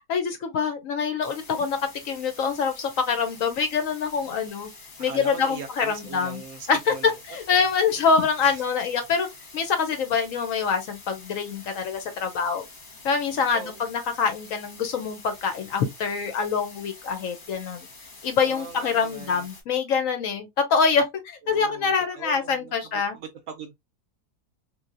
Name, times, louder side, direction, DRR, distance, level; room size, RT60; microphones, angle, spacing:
voice 1, 0.0-4.7 5.0-6.4 6.7-9.3 9.5-12.6 13.0-17.9 18.2-23.2, left 5 dB, 65° left, 0.9 m, -25 dB
sound 1, 1.2-19.6, left 3 dB, 35° left, 1.0 m, -47 dB
voice 2, 5.0-7.2 7.5-7.6 8.4-8.6 9.1-9.3 13.5-14.0 18.4-19.4 21.4-23.7, right 5 dB, 70° right, 0.8 m, -41 dB
3.1 x 2.6 x 2.4 m
omnidirectional pair, 1.7 m